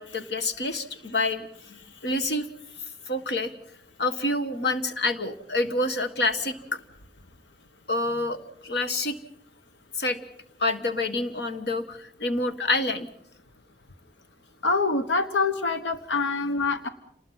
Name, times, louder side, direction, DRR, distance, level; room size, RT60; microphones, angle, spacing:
voice 1, 0.0-1.5 2.0-2.5 3.1-3.5 4.0-6.5 7.9-8.4 8.6-9.2 10.0-10.2 10.6-13.1, left 2 dB, 65° left, 9 dB, 1.6 m, -27 dB
voice 2, 14.6-16.9, left 3 dB, 90° left, 9 dB, 1.2 m, -25 dB
28.5 x 20.0 x 5.8 m, 0.71 s
head